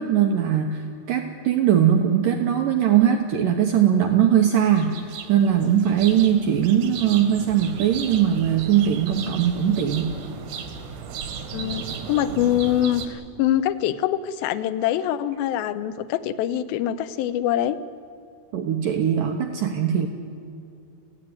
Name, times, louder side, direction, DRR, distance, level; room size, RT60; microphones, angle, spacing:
voice 1, 0.0-5.0 5.3-10.1 18.5-20.1, right 9 dB, 70° right, 4 dB, 2.5 m, -20 dB
sound 1, 4.8-13.1, right 6 dB, 90° right, 3.9 m, -36 dB
voice 2, 11.5-17.8, left 11 dB, 75° left, 11 dB, 2.5 m, -24 dB
27.0 x 16.5 x 9.6 m, 2.6 s
omnidirectional pair, 4.5 m